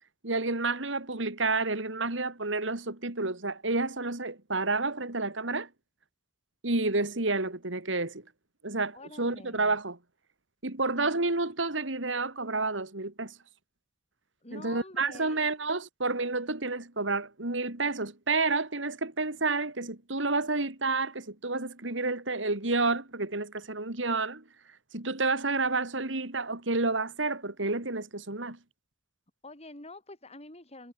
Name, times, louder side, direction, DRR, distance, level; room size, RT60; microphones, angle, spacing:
voice 1, 0.2-5.7 6.6-8.2 8.6-10.0 10.6-13.3 14.5-24.4 24.9-28.6, right 3 dB, 80° right, 3.1 m, -30 dB
voice 2, 8.9-9.8 14.4-15.5 29.4-30.9, left 2 dB, 35° left, 7.8 m, -47 dB
head